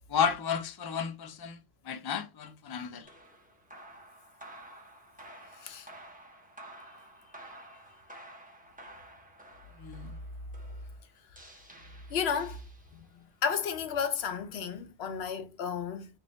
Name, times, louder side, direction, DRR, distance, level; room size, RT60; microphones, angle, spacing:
voice 1, 0.1-1.6 1.8-3.1 9.8-10.2, left 7 dB, 35° left, 0.4 m, -32 dB
sound 1, 3.0-13.2, right 1 dB, 10° right, 0.9 m, -52 dB
voice 2, 12.1-12.6 12.9-16.1, left 7 dB, 80° left, 0.9 m, -33 dB
3.2 x 2.6 x 4.1 m
omnidirectional pair, 1.1 m